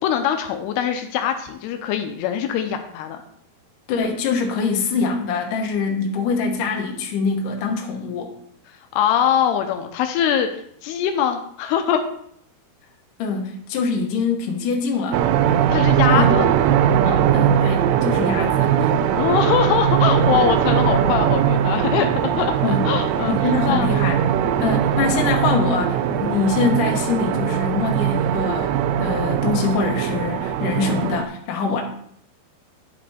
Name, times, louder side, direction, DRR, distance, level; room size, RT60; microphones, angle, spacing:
voice 1, 0.0-3.2 9.0-10.5 10.8-12.1 15.7-16.5 17.0-17.3 19.2-23.9 24.6-24.8, left 9 dB, 85° left, 6 dB, 2.7 m, -22 dB
voice 2, 3.9-8.3 13.2-15.2 15.5-15.7 16.1-16.4 17.3-18.9 22.6-22.8 23.3-24.2 24.6-31.8, left 4 dB, 65° left, 1 dB, 2.5 m, -24 dB
sound 1, 15.1-31.3, right 9 dB, 90° right, 2.7 m, -20 dB
10.5 x 5.3 x 4.2 m, 0.67 s
omnidirectional pair, 4.7 m